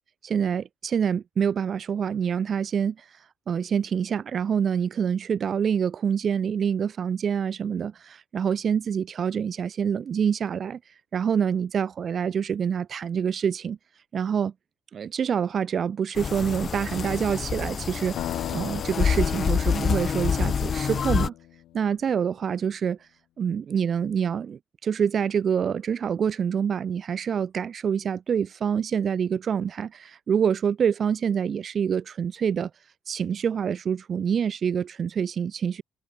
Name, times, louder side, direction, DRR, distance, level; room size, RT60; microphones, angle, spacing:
voice 1, 0.2-13.8 14.1-14.5 14.9-21.3 21.7-23.1 23.4-32.7 33.1-35.8, right 7 dB, 45° right, 0.7 m, -26 dB
sound 1, 16.1-21.3, left 6 dB, 45° left, 1.0 m, -27 dB
sound 2, 18.2-21.9, left 14 dB, 60° left, 1.2 m, -38 dB
figure-of-eight pair, 50°, 0 cm